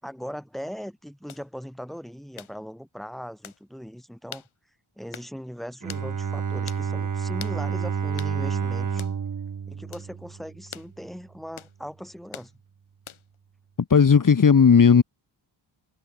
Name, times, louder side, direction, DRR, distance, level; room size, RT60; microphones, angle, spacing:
voice 1, 0.0-4.4 5.0-9.0 9.7-12.5, equal, ahead, 5.6 m, -39 dB
sound 1, 1.3-1.5 2.4-2.6 3.4-3.6 4.3-4.5 5.1-5.3 5.9-6.1 6.7-6.9 7.4-7.6 8.2-8.4 9.0-9.2 9.9-10.1 10.7-10.9 11.6-11.8 12.3-12.5 13.1-13.4, left 9 dB, 80° left, 5.1 m, -42 dB
Bowed string instrument, 5.8-10.8, right 6 dB, 40° right, 1.4 m, -29 dB
voice 2, 13.9-15.0, left 6 dB, 40° left, 1.7 m, -15 dB
cardioid pair, 85°, 48 cm